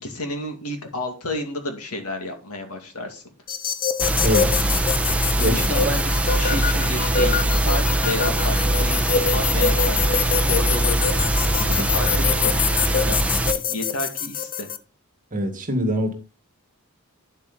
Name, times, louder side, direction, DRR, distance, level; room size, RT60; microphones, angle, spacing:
voice 1, 0.0-3.2 5.4-11.0 11.7-14.7, left 2 dB, 80° left, 2.4 m, -31 dB
sound 1, 3.5-14.8, left 7 dB, 40° left, 0.7 m, -25 dB
sound 2, 4.0-13.5, right 1 dB, 5° right, 0.9 m, -22 dB
voice 2, 4.2-4.6 5.4-5.6 11.6-11.9 15.3-16.1, equal, 40° right, 2.0 m, -24 dB
9.1 x 7.8 x 4.1 m
head